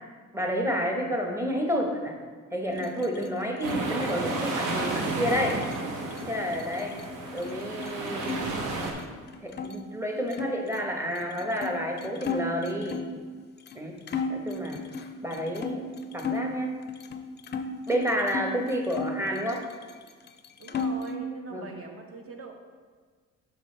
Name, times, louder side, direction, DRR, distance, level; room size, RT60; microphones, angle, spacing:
voice 1, 0.3-2.1 2.5-5.6 6.3-7.0 7.3-8.3 9.4-13.0 13.7-14.0 14.3-14.8 15.2-15.8 16.1-16.7 17.9-19.7 21.5-21.7, equal, 10° right, 2 dB, 1.0 m, -30 dB
sound 1, 2.7-8.4 8.7-9.7 10.3-13.2 13.7-13.8 14.1-16.5 16.9-18.5 18.9-20.0 20.3-21.2, left 4 dB, 35° left, 0.4 m, -36 dB
sound 2, 3.6-8.9, right 3 dB, 80° right, 1.0 m, -32 dB
voice 2, 20.6-22.5, right 3 dB, 50° right, 3 dB, 1.0 m, -41 dB
6.0 x 5.7 x 3.2 m, 1.5 s
cardioid pair, 90°, 30 cm